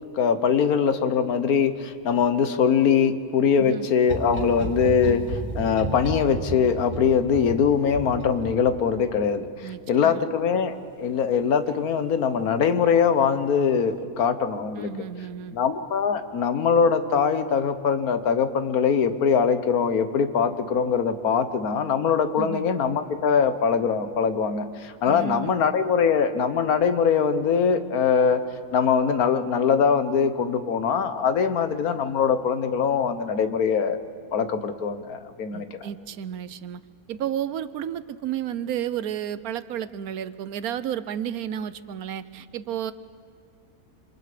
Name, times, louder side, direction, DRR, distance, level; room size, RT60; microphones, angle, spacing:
voice 1, 0.1-14.9 15.5-28.4 28.7-34.0 34.3-35.9, left 6 dB, 90° left, 10 dB, 1.6 m, -22 dB
sound 1, 4.0-9.2 11.0-11.4 11.7-11.8, right 2 dB, 50° right, 3.0 m, -34 dB
voice 2, 9.6-10.2 14.8-15.6 22.4-22.6 25.1-25.6 35.5-36.8 37.1-42.9, right 9 dB, 90° right, 14 dB, 1.2 m, -32 dB
27.5 x 26.5 x 5.1 m, 2.1 s
omnidirectional pair, 1.5 m